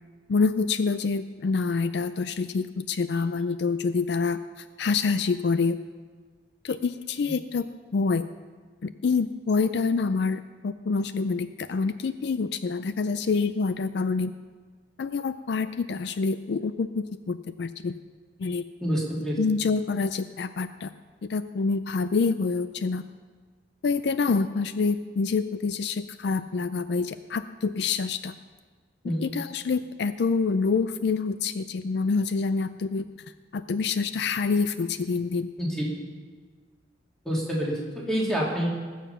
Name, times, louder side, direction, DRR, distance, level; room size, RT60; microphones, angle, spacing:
voice 1, 0.3-5.8 6.6-7.7 7.9-8.3 8.8-14.3 15.0-18.0 18.4-18.6 19.4-20.9 21.3-23.0 23.8-28.3 29.2-33.1 33.5-35.5, left 4 dB, 60° left, 12 dB, 0.4 m, -26 dB
voice 2, 18.8-19.4 29.0-29.2 35.6-35.8 37.2-38.7, equal, 5° left, -4 dB, 2.5 m, -27 dB
19.0 x 7.3 x 5.6 m, 1.5 s
head